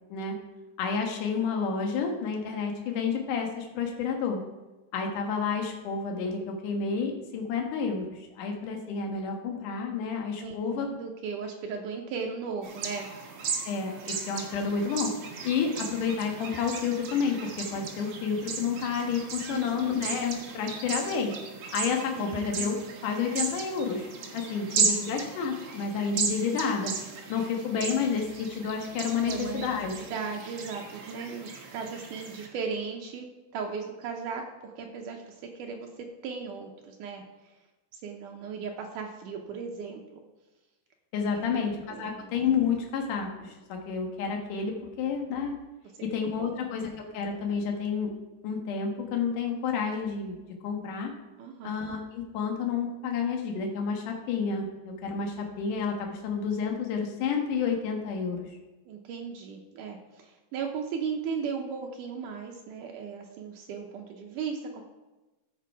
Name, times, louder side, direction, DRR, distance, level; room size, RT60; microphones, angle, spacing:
voice 1, 0.8-4.4 4.9-10.9 13.7-15.1 15.4-21.3 21.7-22.8 23.0-26.9 27.3-29.9 41.1-45.5 46.1-48.1 48.4-50.4 50.6-51.1 51.6-58.4, left 6 dB, 60° left, 2 dB, 2.5 m, -30 dB
voice 2, 10.4-13.1 19.5-20.0 22.1-22.4 24.7-25.0 29.2-29.7 30.0-33.3 33.5-35.9 36.2-37.2 37.9-40.2 41.3-42.3 46.0-46.5 51.4-51.7 58.9-64.8, right 5 dB, 85° right, 2 dB, 1.8 m, -37 dB
sound 1, 12.6-32.5, right 5 dB, 65° right, 1.5 m, -36 dB
14.5 x 6.8 x 4.7 m, 1.1 s
omnidirectional pair, 4.8 m